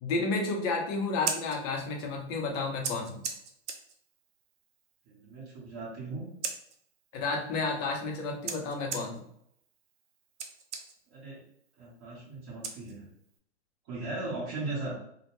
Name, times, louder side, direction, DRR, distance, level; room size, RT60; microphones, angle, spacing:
voice 1, 0.0-3.2 7.1-9.2, left 3 dB, 35° left, 1 dB, 0.6 m, -31 dB
Scissors, 1.0-13.4, right 6 dB, 70° right, 0.6 m, -42 dB
voice 2, 5.1-6.3 11.1-11.4 11.8-13.1 13.9-15.0, right 2 dB, 30° right, -7 dB, 0.8 m, -38 dB
2.2 x 2.1 x 2.9 m, 0.70 s
hypercardioid pair, 130°, 36 cm